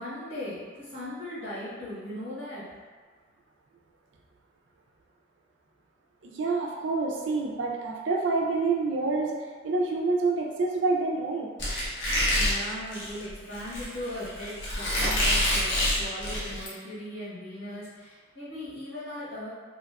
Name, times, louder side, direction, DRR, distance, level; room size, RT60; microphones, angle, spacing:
voice 1, 0.0-2.7 12.3-19.5, left 1 dB, 90° left, -10 dB, 1.2 m, -38 dB
voice 2, 6.2-11.5, right 3 dB, 80° right, 0 dB, 0.4 m, -27 dB
Squeak, 11.6-16.7, left 1 dB, 70° left, 0.8 m, -27 dB
2.8 x 2.2 x 2.3 m, 1.5 s
head